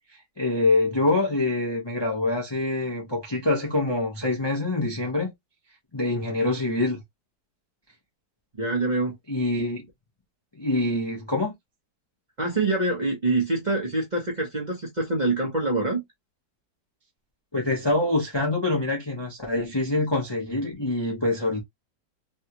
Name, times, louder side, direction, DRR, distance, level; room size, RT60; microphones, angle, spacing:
voice 1, 0.1-5.3 5.9-7.0 9.3-9.8 10.6-11.5 17.5-21.6, left 2 dB, 25° left, 0.6 m, -25 dB
voice 2, 8.6-9.1 12.4-16.0, right 2 dB, 30° right, 0.9 m, -25 dB
3.4 x 2.4 x 2.8 m
omnidirectional pair, 1.9 m